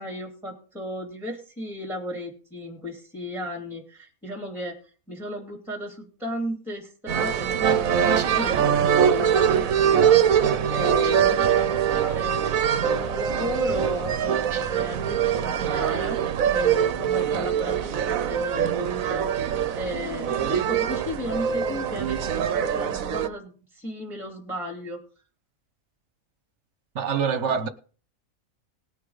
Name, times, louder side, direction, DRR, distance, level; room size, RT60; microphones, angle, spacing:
voice 1, 0.0-4.8 5.1-25.0, equal, ahead, 2.9 m, -35 dB
sound 1, 7.1-23.3, right 8 dB, 80° right, 1.2 m, -23 dB
sound 2, 8.2-8.6 11.0-11.5 14.5-15.0, right 5 dB, 40° right, 0.4 m, -41 dB
voice 2, 26.9-27.7, right 6 dB, 60° right, 1.3 m, -25 dB
19.5 x 6.6 x 4.0 m
omnidirectional pair, 1.4 m